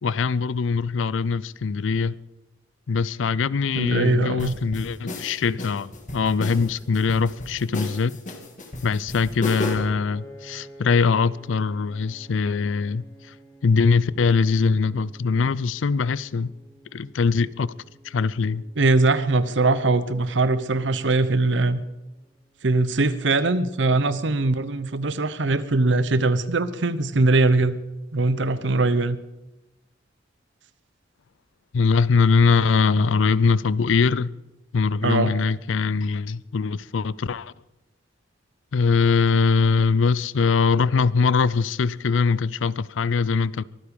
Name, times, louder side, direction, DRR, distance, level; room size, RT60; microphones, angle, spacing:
voice 1, 0.0-2.2 2.9-8.2 8.8-13.0 13.6-16.5 16.9-17.7 18.0-18.6 31.7-34.4 34.7-37.5 38.7-43.6, left 5 dB, 85° left, 0.5 m, -22 dB
voice 2, 3.7-4.6 18.8-21.8 22.6-27.8 28.1-29.2 35.0-35.3, right 2 dB, 70° right, 0.9 m, -21 dB
sound 1, 4.4-10.0, left 2 dB, 40° left, 2.2 m, -33 dB
Piano, 10.1-22.4, right 1 dB, ahead, 3.6 m, -51 dB
24.0 x 9.7 x 5.3 m
head